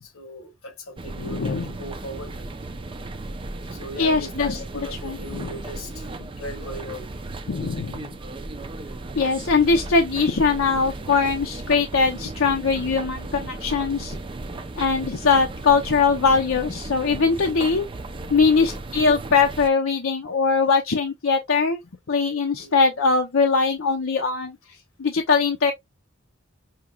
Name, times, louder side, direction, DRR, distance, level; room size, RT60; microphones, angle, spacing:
voice 1, 0.0-2.5 3.7-6.1 6.4-7.1 18.6-18.8 22.6-22.8, equal, 85° left, 1.2 m, -38 dB
sound 1, 1.0-19.7, right 2 dB, 25° right, 0.4 m, -35 dB
voice 2, 1.2-1.7 4.0-5.5 7.5-8.1 9.2-14.2 14.8-17.8 18.3-21.8 22.1-24.6 25.0-25.7, left 4 dB, 70° left, 0.7 m, -21 dB
5.7 x 2.9 x 2.3 m
head